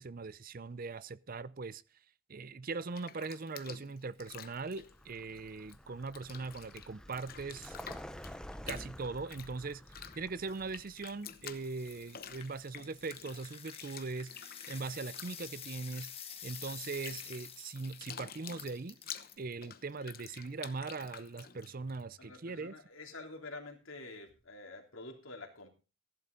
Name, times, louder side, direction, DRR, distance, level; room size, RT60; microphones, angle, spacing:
voice 1, 0.0-1.8 2.3-8.0 8.7-19.0 19.4-22.7, right 4 dB, 40° right, 0.5 m, -41 dB
Bathtub (filling or washing), 2.7-5.8 6.0-22.0, left 8 dB, 45° left, 0.9 m, -50 dB
Vehicle, 4.3-13.1, equal, 5° left, 0.6 m, -51 dB
sound 1, 10.2-19.3, left 8 dB, 25° left, 1.8 m, -49 dB
voice 2, 22.2-25.7, left 2 dB, 65° left, 3.1 m, -48 dB
14.5 x 11.5 x 3.9 m
head